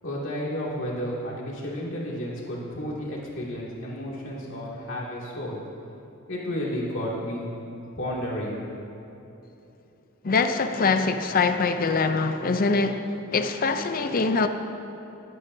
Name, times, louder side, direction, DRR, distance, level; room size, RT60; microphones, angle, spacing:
voice 1, 0.0-5.6 6.3-8.6, equal, 60° left, 2.5 m, -32 dB
voice 2, 10.2-14.5, left 4 dB, 40° left, 0.5 m, -23 dB
20.5 x 9.3 x 2.7 m
head